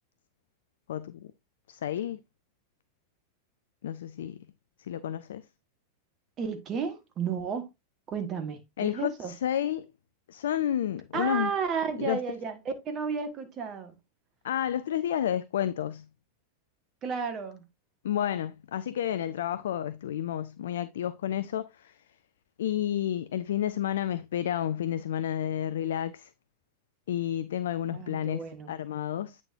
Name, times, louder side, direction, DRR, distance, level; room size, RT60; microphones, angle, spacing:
voice 1, 0.9-1.3 1.7-2.2 3.8-4.5 4.8-5.5 8.8-9.9 10.3-11.5 12.0-12.2 14.4-16.1 18.0-22.0 22.6-26.3 27.1-29.4, left 10 dB, 60° left, 0.4 m, -31 dB
voice 2, 6.4-7.7 8.1-9.3 11.1-13.9 17.0-17.7 27.9-28.7, right 6 dB, 30° right, 1.5 m, -33 dB
8.7 x 6.2 x 2.7 m
figure-of-eight pair, 90°, 0 cm